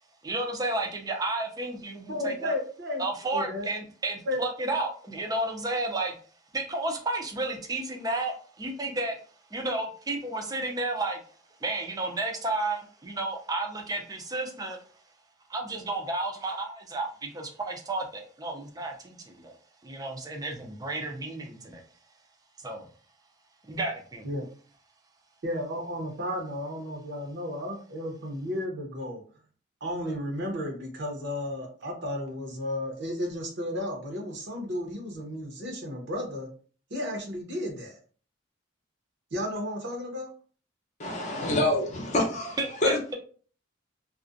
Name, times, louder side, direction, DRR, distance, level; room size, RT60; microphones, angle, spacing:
voice 1, 0.2-2.5 3.0-6.2 6.5-9.2 9.5-11.2 11.6-14.8 15.5-19.5 19.8-21.8 22.6-22.9 23.7-24.3 42.6-43.1, right 2 dB, 20° right, 0.4 m, -32 dB
voice 2, 2.1-3.0 3.3-3.7 4.3-4.4 24.2-24.5 25.4-29.2 29.8-36.5 36.9-38.0 39.3-40.3, left 1 dB, 65° right, 0.8 m, -33 dB
voice 3, 41.0-43.0, left 1 dB, 40° left, 0.7 m, -27 dB
2.4 x 2.1 x 2.5 m
head